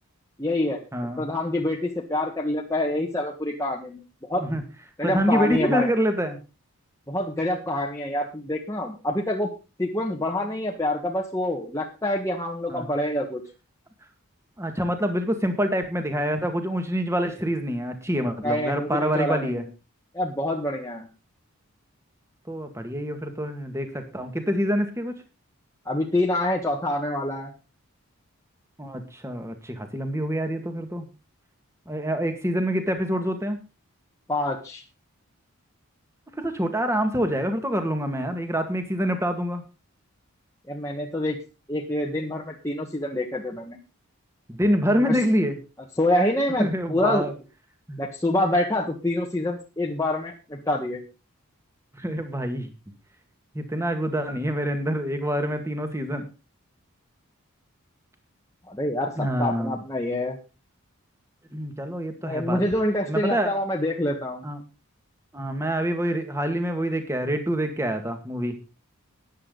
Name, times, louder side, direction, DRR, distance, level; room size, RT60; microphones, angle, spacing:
voice 1, 0.4-0.8 1.2-4.0 4.3-4.5 5.0-5.9 7.1-9.5 9.8-13.4 18.4-19.7 20.1-21.1 25.8-27.5 34.3-34.8 40.7-41.4 41.7-43.8 45.0-45.2 46.0-47.2 48.0-51.0 58.7-60.4 62.2-64.5, left 1 dB, 15° left, -1 dB, 1.4 m, -26 dB
voice 2, 5.0-6.4 12.7-12.8 14.6-19.6 22.5-25.2 28.8-31.0 31.9-33.6 36.4-39.6 44.5-45.6 46.6-47.3 47.9-48.0 51.9-52.7 53.5-56.3 59.2-59.8 61.5-62.6 63.1-63.6 64.4-64.6 65.3-68.5, equal, 10° right, 6 dB, 2.0 m, -26 dB
14.0 x 10.5 x 4.0 m, 0.30 s
head